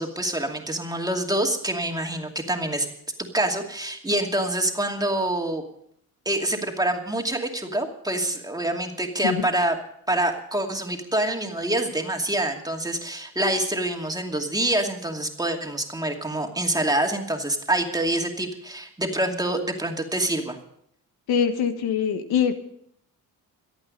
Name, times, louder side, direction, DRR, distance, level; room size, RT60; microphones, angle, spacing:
voice 1, 0.0-2.9 3.2-5.6 6.3-9.7 10.1-20.6, right 1 dB, 10° right, 2 dB, 2.5 m, -26 dB
voice 2, 21.3-22.5, left 7 dB, 80° left, 8 dB, 1.5 m, -23 dB
26.5 x 8.8 x 5.3 m, 0.69 s
cardioid pair, 90°, 37 cm